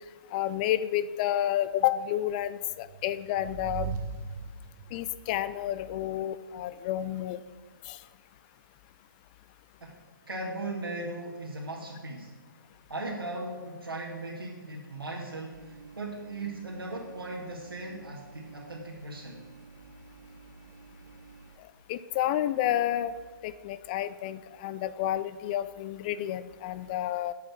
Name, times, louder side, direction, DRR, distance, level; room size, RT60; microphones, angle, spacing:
voice 1, 0.3-3.9 4.9-7.4 7.9-8.0 21.9-23.1 23.4-27.3, left 12 dB, 25° left, 15 dB, 0.3 m, -30 dB
sound 1, 2.7-5.1, right 5 dB, 20° right, 0.8 m, -38 dB
voice 2, 10.3-12.3 12.9-19.4, right 2 dB, 85° right, -3 dB, 2.2 m, -38 dB
sound 2, 15.5-21.6, right 5 dB, 50° right, 0.9 m, -52 dB
8.6 x 7.4 x 8.5 m, 1.3 s
figure-of-eight pair, 140°, 12 cm